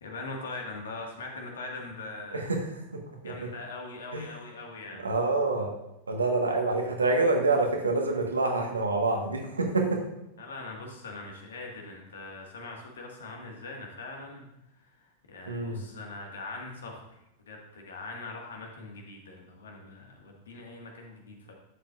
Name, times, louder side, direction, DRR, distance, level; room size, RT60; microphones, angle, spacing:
voice 1, 0.0-2.4 3.2-5.0 10.4-14.5 15.0-17.1 17.5-21.5, left 3 dB, 65° left, 1 dB, 1.7 m, -41 dB
voice 2, 2.3-2.6 2.9-3.3 4.1-4.3 5.0-5.7 6.1-10.0 15.5-15.8, right 3 dB, 75° right, 2 dB, 1.3 m, -27 dB
11.0 x 7.4 x 2.5 m, 0.87 s
figure-of-eight pair, 90°, 0 cm